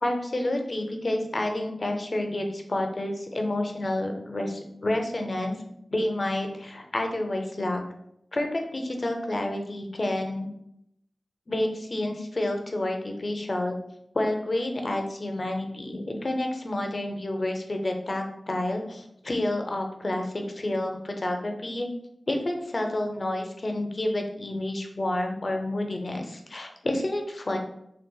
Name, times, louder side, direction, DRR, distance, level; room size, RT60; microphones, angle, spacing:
voice 1, 0.0-5.6 5.9-7.8 8.3-10.5 11.5-13.7 14.1-21.9 22.3-27.6, left 1 dB, 50° left, 3 dB, 0.5 m, -29 dB
3.8 x 2.2 x 2.2 m, 0.77 s
wide cardioid pair, 65°, 0 cm